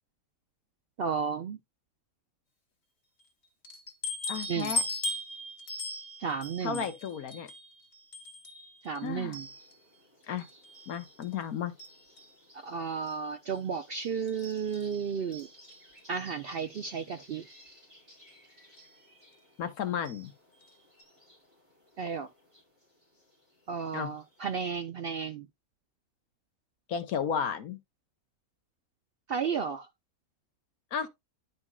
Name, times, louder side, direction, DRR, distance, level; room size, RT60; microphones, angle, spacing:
voice 1, 1.0-1.6 4.5-4.7 6.2-6.8 8.8-9.5 12.6-15.5 16.1-17.4 22.0-22.3 23.7-25.5 29.3-29.9, right 6 dB, 65° right, 0.6 m, -33 dB
sound 1, 3.6-10.0 10.4-11.4 11.8-12.4 13.1-13.2 13.5-13.6 14.0-16.0 17.0-17.1 17.5-17.6 18.7-19.0 20.1-20.3 20.6-20.7 21.0-21.1, left 2 dB, 50° left, 1.7 m, -39 dB
voice 2, 4.3-4.8 6.6-7.5 9.0-9.4 10.3-10.5 10.9-11.7 19.6-20.3 23.9-24.1 26.9-27.8 30.9-31.1, left 7 dB, 80° left, 1.4 m, -33 dB
sound 2, 9.0-24.7, left 1 dB, 20° right, 4.4 m, -59 dB
11.0 x 5.2 x 2.3 m
omnidirectional pair, 1.5 m